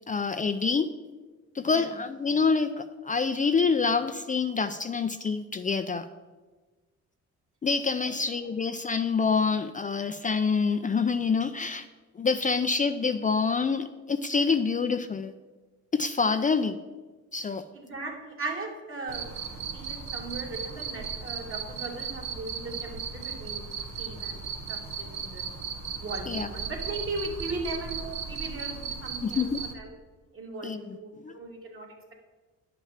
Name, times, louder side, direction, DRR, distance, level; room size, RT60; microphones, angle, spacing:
voice 1, 0.1-0.9 1.5-6.1 7.6-11.9 12.2-15.3 15.9-16.8 17.3-17.6 26.3-26.5 29.2-29.6 30.6-31.3, left 5 dB, 25° left, 8 dB, 0.5 m, -26 dB
voice 2, 8.0-8.5 17.7-19.3 19.7-23.6 24.0-25.4 26.0-29.5 29.7-29.9 30.3-32.1, right 2 dB, 45° right, 0 dB, 2.6 m, -38 dB
Cricket, 19.1-29.7, right 6 dB, 70° right, 1.3 m, -36 dB
9.8 x 5.8 x 7.3 m, 1.3 s
cardioid pair, 90°, 30 cm